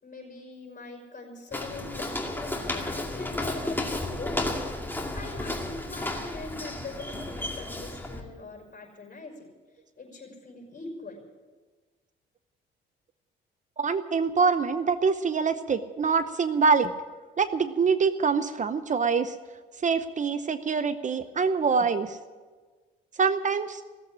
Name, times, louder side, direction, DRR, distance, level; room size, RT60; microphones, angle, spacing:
voice 1, 0.0-4.3 4.7-9.5 10.0-11.2, left 3 dB, 40° left, 2 dB, 5.6 m, -42 dB
Walk footsteps, 1.5-8.2, left 2 dB, 10° left, 2.3 m, -33 dB
voice 2, 13.8-16.9 17.4-19.4 19.8-22.2 23.2-23.8, right 5 dB, 40° right, 12 dB, 0.8 m, -25 dB
17.0 x 7.9 x 10.0 m, 1.4 s
cardioid pair, 90°, 20 cm